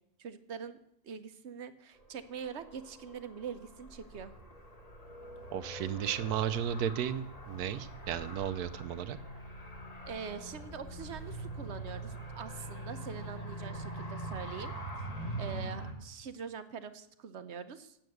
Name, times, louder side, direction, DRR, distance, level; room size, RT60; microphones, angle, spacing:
voice 1, 0.2-0.8 1.0-4.4 10.1-14.8 15.4-18.0, right 6 dB, 55° right, 11 dB, 0.9 m, -43 dB
Car, 2.0-15.9, right 1 dB, 25° left, 1.5 m, -43 dB
voice 2, 5.5-9.2, right 9 dB, 85° right, 12 dB, 1.2 m, -34 dB
9.1 x 7.7 x 7.9 m, 0.76 s
omnidirectional pair, 1.6 m